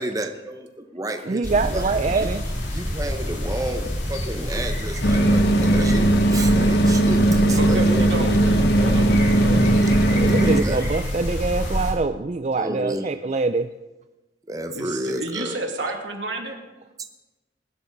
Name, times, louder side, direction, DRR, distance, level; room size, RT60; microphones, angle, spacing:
voice 1, 0.0-2.4 2.7-8.2 10.3-10.9 12.5-13.1 14.5-15.6, right 1 dB, 20° right, 6 dB, 0.8 m, -31 dB
voice 2, 1.3-2.5 10.1-13.7, right 3 dB, 35° right, 9 dB, 0.4 m, -24 dB
sound 1, 1.4-11.9, equal, 75° left, 4.9 m, -27 dB
sound 2, 5.0-10.6, right 1 dB, 60° left, 1.1 m, -18 dB
voice 3, 7.5-9.6 10.0-10.3 14.7-16.6, right 2 dB, 80° right, 2 dB, 2.4 m, -31 dB
20.0 x 12.5 x 4.0 m, 1.1 s
head